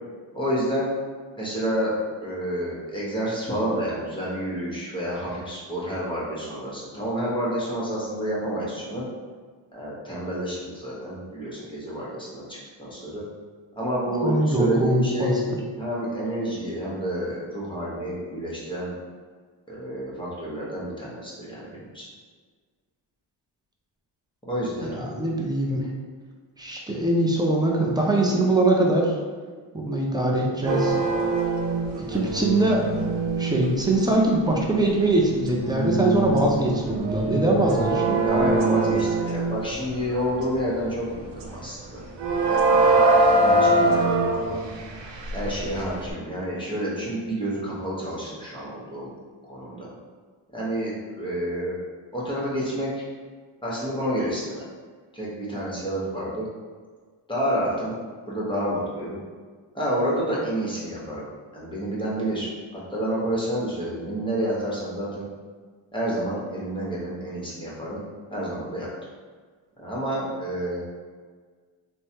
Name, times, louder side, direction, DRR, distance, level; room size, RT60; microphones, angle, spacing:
voice 1, 0.3-0.9 1.4-9.0 9.7-13.2 13.8-15.4 15.8-18.9 19.7-22.1 24.5-24.9 38.2-42.0 42.4-44.7 45.3-49.1 49.5-49.9 50.5-51.8 52.1-53.0 53.6-54.6 55.1-56.5 57.3-57.9 58.3-59.2 59.7-61.2 61.5-65.3 65.9-68.0 68.3-68.9 69.8-70.8, equal, 10° left, -7 dB, 1.0 m, -29 dB
voice 2, 14.2-15.3 24.8-25.9 26.6-29.2 29.7-31.0 32.1-32.9 33.4-38.2, right 1 dB, 10° right, -1 dB, 0.5 m, -22 dB
sound 1, 30.7-34.1 34.6-34.8 35.4-40.9 41.4-41.7 42.2-46.1, right 2 dB, 65° right, 0.6 m, -23 dB
3.1 x 2.1 x 2.8 m, 1.5 s
cardioid pair, 75°, 47 cm